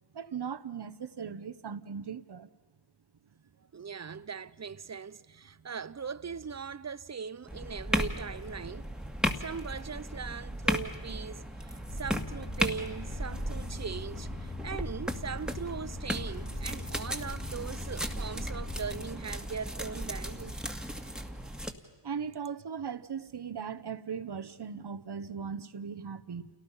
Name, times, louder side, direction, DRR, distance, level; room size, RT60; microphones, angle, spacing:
voice 1, 0.1-2.5 22.0-26.5, right 6 dB, 55° right, 1.1 m, -38 dB
voice 2, 3.7-8.9 9.4-20.6, right 6 dB, 35° right, 0.7 m, -40 dB
sound 1, 7.5-21.7, equal, ahead, 2.0 m, -36 dB
sound 2, 11.9-19.1, left 3 dB, 70° left, 2.4 m, -43 dB
28.5 x 18.0 x 5.7 m
cardioid pair, 40°, 49 cm